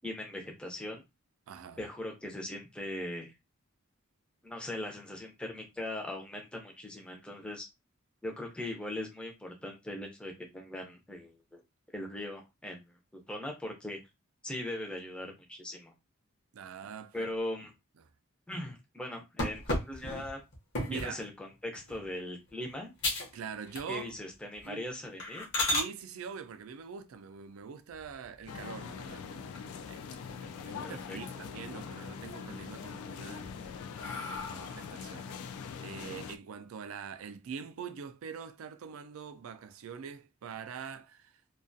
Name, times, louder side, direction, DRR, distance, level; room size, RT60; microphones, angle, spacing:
voice 1, 0.0-1.0 1.8-3.3 4.4-7.6 8.2-11.6 11.9-12.9 13.3-14.0 14.4-15.9 17.1-17.7 18.5-20.4 20.9-22.9 23.9-25.4 30.8-31.2, left 1 dB, 5° left, 0.5 m, -40 dB
voice 2, 1.5-1.9 16.5-17.3 18.0-18.1 20.8-21.2 23.3-24.0 24.7-24.8 25.6-30.0 30.3-41.4, right 6 dB, 80° right, 0.4 m, -44 dB
sound 1, 19.4-21.2 21.7-22.1 22.5-22.6 23.0-23.4 23.7-24.2 24.5-24.7 25.2-25.9 27.9-28.6 29.0-29.1 29.5-29.6 29.9-30.7 31.1-31.7 32.1-32.7 33.3-35.0, left 1 dB, 55° left, 0.8 m, -35 dB
sound 2, 28.5-36.4, left 6 dB, 85° left, 0.3 m, -43 dB
2.4 x 2.2 x 2.5 m
head